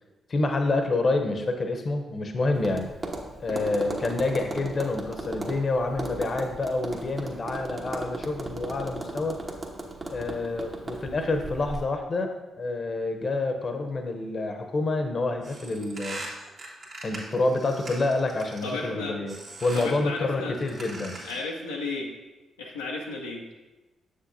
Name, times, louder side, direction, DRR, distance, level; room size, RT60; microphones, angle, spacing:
voice 1, 0.3-3.0 3.4-9.4 10.1-16.2 17.0-19.3 19.6-21.2, left 2 dB, 45° left, 6 dB, 0.8 m, -28 dB
Tap, 2.5-11.9, right 2 dB, 45° right, 1.1 m, -37 dB
sound 1, 15.4-18.9 19.3-20.0 20.5-21.5, right 2 dB, 65° right, 1.9 m, -41 dB
voice 2, 18.6-19.2 19.7-20.5 21.3-22.1 22.6-23.4, left 3 dB, 90° left, -3 dB, 0.6 m, -33 dB
7.1 x 6.6 x 2.7 m, 1.1 s
hypercardioid pair, 40°, 0 cm